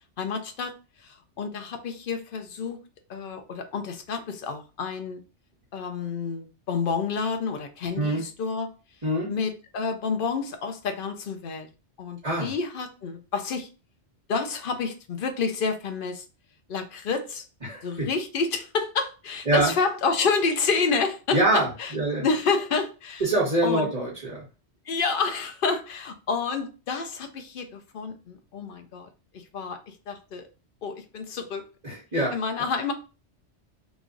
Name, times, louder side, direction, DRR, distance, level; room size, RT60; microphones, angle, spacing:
voice 1, 0.2-0.7 1.0-2.8 3.1-5.2 5.7-8.7 9.3-11.7 12.0-13.7 14.3-16.2 16.7-17.4 17.8-21.9 22.2-23.2 23.6-23.9 24.9-29.1 29.5-29.8 30.1-30.5 30.8-31.6 32.3-32.9, left 5 dB, 55° left, 0.7 m, -29 dB
voice 2, 17.6-18.1 19.5-19.7 21.3-22.2 23.2-24.4 31.8-32.4, right 1 dB, 35° right, 1.3 m, -24 dB
3.1 x 2.4 x 3.7 m
omnidirectional pair, 1.2 m